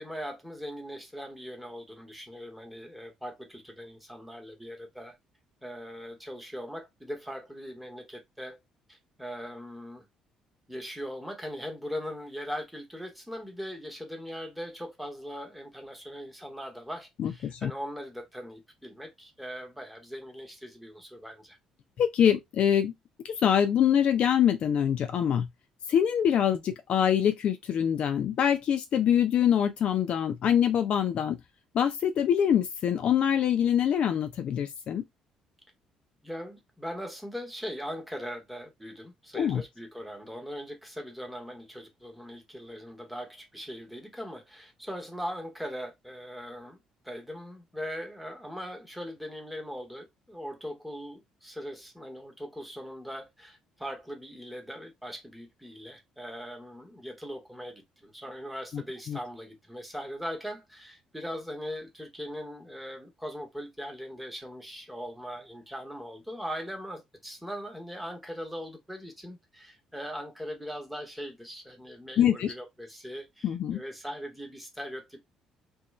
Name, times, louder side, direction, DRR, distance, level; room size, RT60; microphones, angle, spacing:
voice 1, 0.0-5.2 5.6-8.6 8.9-10.1 10.7-21.6 36.2-46.8 47.0-75.2, equal, 5° right, 1.0 m, -40 dB
voice 2, 17.2-17.7 22.0-22.9 23.2-25.5 25.9-31.4 31.7-35.0 39.3-39.6 58.7-58.8 59.1-59.2 72.2-72.5 73.4-73.8, left 9 dB, 50° left, 0.4 m, -24 dB
2.9 x 2.2 x 3.0 m
figure-of-eight pair, 45°, 2 cm